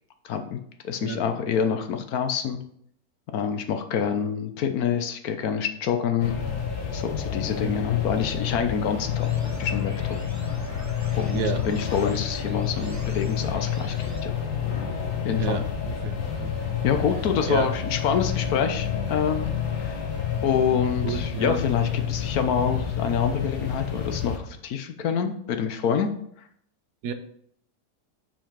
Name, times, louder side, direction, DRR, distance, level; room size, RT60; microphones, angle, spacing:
voice 1, 0.2-0.6 0.8-2.6 3.3-6.4 6.9-9.3 9.6-9.9 10.3-10.5 11.2-14.4 15.2-15.7 16.8-19.5 19.8-20.0 20.4-26.1, left 7 dB, 70° left, 7 dB, 1.2 m, -26 dB
sound 1, 6.2-24.4, left 8 dB, 90° left, 1.6 m, -29 dB
sound 2, 9.2-14.2, right 2 dB, 20° right, 0.5 m, -45 dB
voice 2, 15.4-16.5 17.5-17.7 21.0-21.6 27.0-27.1, right 6 dB, 80° right, 9 dB, 1.2 m, -30 dB
5.6 x 5.2 x 5.1 m, 0.68 s
omnidirectional pair, 1.7 m